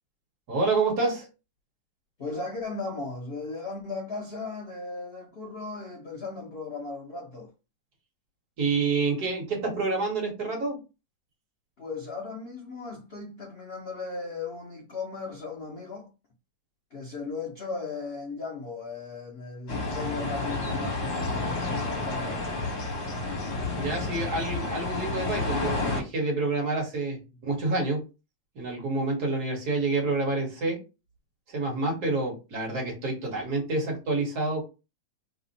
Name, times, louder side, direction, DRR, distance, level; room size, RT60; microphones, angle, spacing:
voice 1, 0.5-1.3 8.6-10.8 23.8-28.0 28.5-30.8 31.5-34.6, right 3 dB, 55° right, 1.6 m, -28 dB
voice 2, 2.2-7.5 11.8-16.1 16.9-22.5 23.1-23.3 31.7-31.8, left 3 dB, 75° left, 0.5 m, -37 dB
sound 1, 19.7-26.0, left 3 dB, 60° left, 1.5 m, -30 dB
3.4 x 2.1 x 3.9 m
omnidirectional pair, 2.1 m